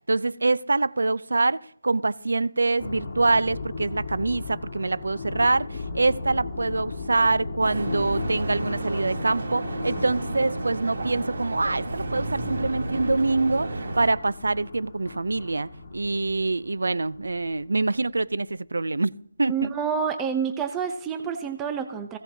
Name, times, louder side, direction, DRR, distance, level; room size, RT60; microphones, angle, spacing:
voice 1, 0.1-19.1 19.4-19.7, right 3 dB, 75° right, 0.6 m, -25 dB
sound 1, 2.8-18.1, left 3 dB, 30° left, 3.1 m, -36 dB
sound 2, 7.6-14.1, right 2 dB, 55° right, 3.0 m, -32 dB
voice 2, 19.5-22.2, right 6 dB, 10° right, 0.6 m, -28 dB
20.0 x 16.0 x 2.8 m
figure-of-eight pair, 170°, 0 cm